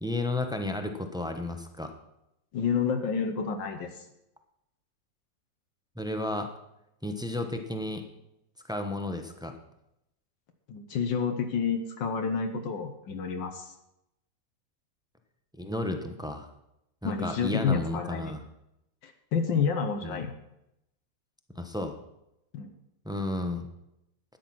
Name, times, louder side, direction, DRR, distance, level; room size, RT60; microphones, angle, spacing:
voice 1, 0.0-1.9 6.0-6.5 7.0-8.0 8.7-9.5 15.6-16.5 17.0-18.4 20.0-20.3 21.5-21.9 23.0-23.7, left 1 dB, 5° right, 5 dB, 0.7 m, -32 dB
voice 2, 2.5-4.1 10.7-13.7 17.0-18.3 19.0-20.3 22.5-22.7, left 6 dB, 80° left, 5 dB, 1.7 m, -29 dB
12.5 x 9.4 x 6.0 m, 0.84 s
omnidirectional pair, 2.0 m